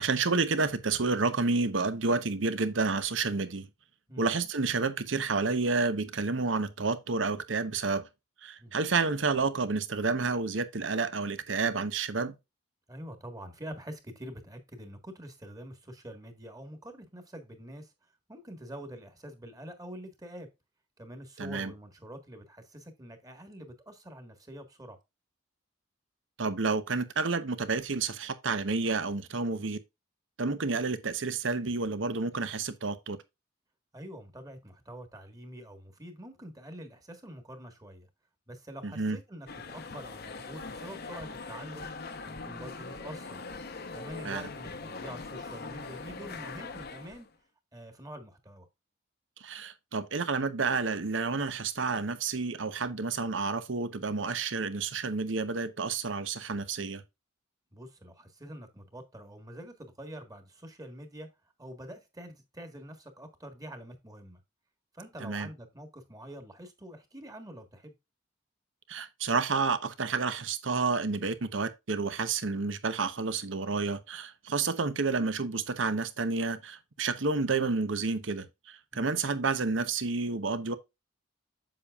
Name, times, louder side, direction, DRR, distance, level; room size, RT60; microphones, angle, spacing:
voice 1, 0.0-3.7 4.2-8.1 8.4-12.3 21.4-21.7 26.4-29.8 30.4-33.2 38.8-39.2 44.2-44.5 49.4-57.0 65.2-65.5 68.9-80.7, right 4 dB, 70° right, 0.9 m, -30 dB
voice 2, 12.9-17.9 18.3-20.5 21.0-25.0 33.9-38.1 38.5-41.9 42.3-43.4 43.9-47.3 47.7-48.7 57.7-61.3 61.6-64.4 64.9-67.9 78.9-79.1, right 1 dB, 20° right, 1.6 m, -46 dB
sound 1, 39.5-47.3, left 4 dB, 55° left, 0.9 m, -42 dB
7.6 x 6.9 x 2.4 m
head